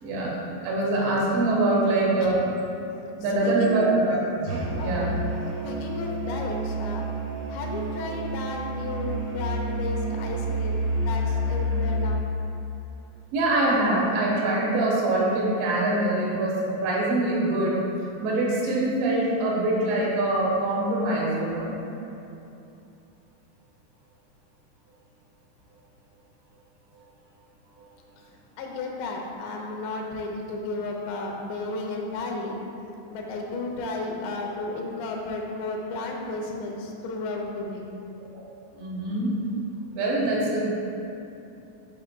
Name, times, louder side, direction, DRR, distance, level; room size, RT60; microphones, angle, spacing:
voice 1, 0.0-2.5 3.2-5.1 13.3-17.8 18.2-21.8 38.4-38.5 38.7-39.3 39.9-40.6, right 2 dB, 90° right, -5 dB, 3.5 m, -24 dB
voice 2, 3.4-4.0 4.8-5.2 5.6-7.1 7.5-12.2 28.6-32.5 33.1-37.8, left 2 dB, 85° left, 0 dB, 3.0 m, -33 dB
Musical instrument, 4.5-12.3, right 1 dB, 70° right, 1.4 m, -29 dB
9.5 x 5.4 x 2.2 m, 2.8 s
omnidirectional pair, 4.9 m